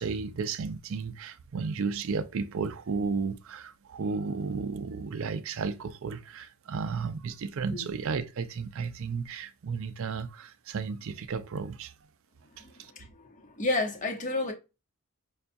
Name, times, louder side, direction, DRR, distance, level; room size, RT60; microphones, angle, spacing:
voice 1, 0.0-11.9 12.8-12.9, right 5 dB, 65° right, 0.4 m, -33 dB
voice 2, 13.6-14.5, left 2 dB, 35° left, 0.8 m, -30 dB
5.6 x 2.3 x 2.5 m
head